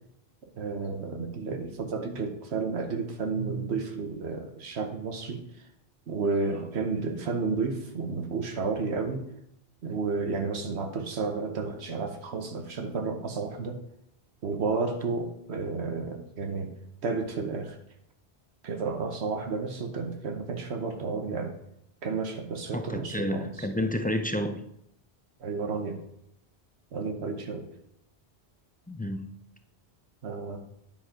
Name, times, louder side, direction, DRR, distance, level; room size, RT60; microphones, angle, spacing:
voice 1, 0.6-5.4 6.1-9.2 9.8-13.8 14.4-16.7 17.0-17.8 18.6-21.5 22.0-23.5 25.4-26.0 26.9-27.7 30.2-30.6, right 4 dB, 75° right, 1.2 m, -31 dB
voice 2, 22.7-24.6 28.9-29.3, left 1 dB, 15° left, 0.3 m, -30 dB
10.0 x 5.5 x 5.0 m
omnidirectional pair, 1.1 m